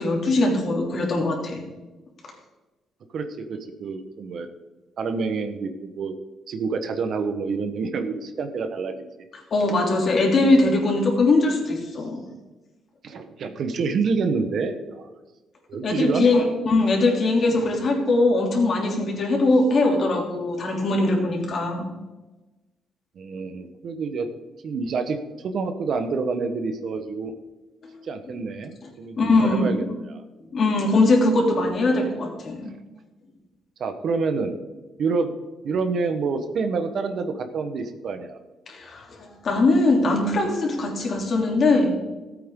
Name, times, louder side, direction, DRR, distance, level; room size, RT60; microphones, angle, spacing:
voice 1, 0.0-1.6 9.5-12.2 15.8-21.9 29.2-29.9 30.5-32.7 38.7-42.0, left 2 dB, 50° left, 0 dB, 3.2 m, -21 dB
voice 2, 3.1-4.5 5.0-6.2 6.5-8.9 10.4-10.8 13.0-15.1 15.7-16.3 23.2-24.3 24.6-25.2 25.4-27.3 28.0-30.2 33.8-34.5 35.0-35.3 35.6-38.4, right 4 dB, 60° right, 7 dB, 1.2 m, -27 dB
15.0 x 8.6 x 3.8 m, 1.1 s
cardioid pair, 90°, 0 cm